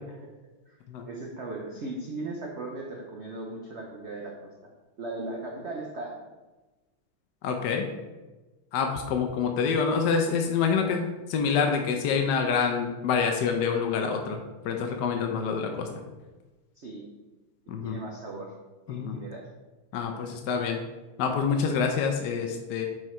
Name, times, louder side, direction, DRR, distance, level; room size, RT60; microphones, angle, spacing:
voice 1, 1.0-4.5 5.0-6.3 16.8-17.1 17.8-18.6 18.9-19.5, right 2 dB, 80° right, -1 dB, 0.6 m, -37 dB
voice 2, 7.4-7.9 8.7-15.9 17.7-18.0 18.9-19.2 19.9-20.8 21.2-22.9, left 6 dB, 70° left, 3 dB, 1.0 m, -27 dB
6.4 x 4.7 x 4.4 m, 1.2 s
omnidirectional pair, 2.4 m